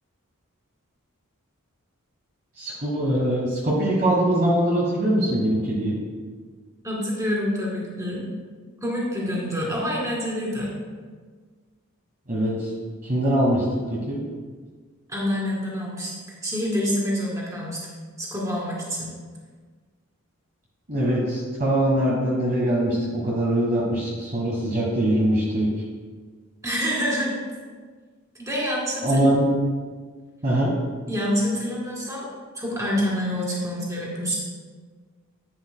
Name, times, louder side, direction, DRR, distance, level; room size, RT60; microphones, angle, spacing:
voice 1, 2.6-6.0 12.3-12.7 13.0-13.6 13.9-14.2 20.9-25.7 29.0-29.5 30.4-30.7, right 1 dB, 40° right, -5 dB, 1.4 m, -22 dB
voice 2, 6.8-8.3 8.8-10.7 15.1-16.1 16.4-17.8 18.2-19.1 26.6-27.4 28.4-29.2 31.1-32.3 32.5-34.4, equal, 15° right, -4 dB, 2.2 m, -27 dB
10.5 x 9.6 x 2.3 m, 1.5 s
head